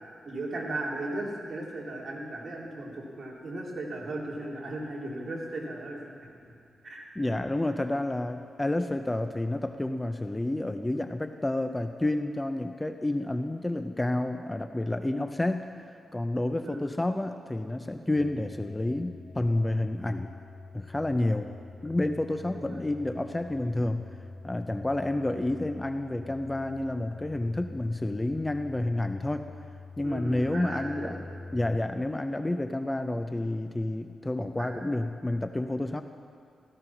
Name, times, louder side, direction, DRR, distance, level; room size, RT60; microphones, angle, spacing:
voice 1, 0.2-6.0 6.8-7.1 16.6-16.8 22.5-22.8 30.0-31.4 34.6-34.7, right 2 dB, 50° right, -4 dB, 3.7 m, -36 dB
voice 2, 7.2-15.6 16.1-20.3 20.7-21.5 21.8-24.0 24.4-29.5 30.0-31.2 31.5-36.0, left 1 dB, 15° left, 7 dB, 0.6 m, -29 dB
sound 1, 18.1-31.8, left 3 dB, 40° left, 0.8 m, -46 dB
16.0 x 14.5 x 6.0 m, 2.3 s
wide cardioid pair, 110°, 0 cm